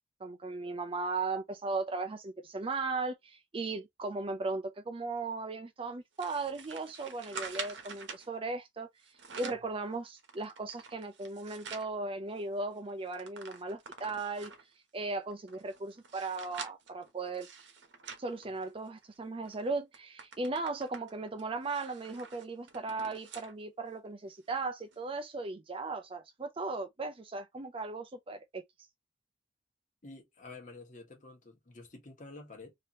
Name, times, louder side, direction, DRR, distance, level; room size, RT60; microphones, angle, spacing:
voice 1, 0.2-8.9 9.4-14.5 14.9-17.5 18.2-28.6, right 3 dB, 30° right, 0.4 m, -37 dB
sound 1, 6.2-8.3 9.0-9.7 10.2-11.9 12.4-12.5 12.7-14.7 15.3-19.0 19.5-19.6 19.9-23.5 24.0-24.1 24.9-25.0, right 5 dB, 65° right, 0.9 m, -46 dB
voice 2, 30.0-32.8, left 3 dB, 40° left, 1.3 m, -49 dB
3.3 x 2.8 x 2.9 m
head